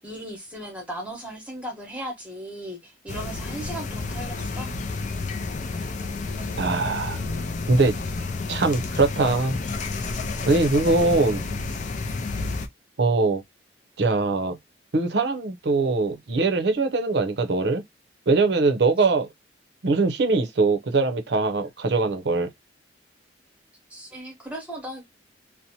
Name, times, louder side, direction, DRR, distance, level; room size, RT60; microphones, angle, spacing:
voice 1, 0.0-4.8 23.9-25.1, right 1 dB, 5° right, 0.9 m, -37 dB
sound 1, 3.1-12.7, left 3 dB, 40° left, 0.4 m, -30 dB
voice 2, 6.6-7.3 7.7-8.0 8.5-9.6 10.5-11.4 13.0-13.4 14.0-14.6 14.9-17.8 18.3-19.3 19.8-22.5, right 3 dB, 60° right, 0.6 m, -22 dB
2.6 x 2.1 x 2.7 m
head